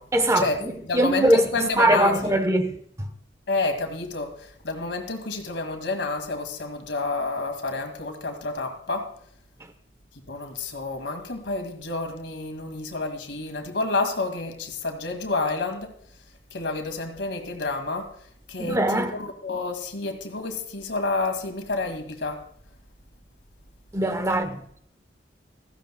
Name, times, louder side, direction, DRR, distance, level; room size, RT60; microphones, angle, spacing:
voice 1, 0.1-3.1 18.6-19.2 23.9-24.8, right 1 dB, 15° right, 1.0 m, -22 dB
voice 2, 0.8-2.4 3.5-9.1 10.3-15.9 16.5-18.1 18.5-22.4, left 3 dB, 85° left, 2.1 m, -29 dB
16.0 x 14.5 x 2.2 m
head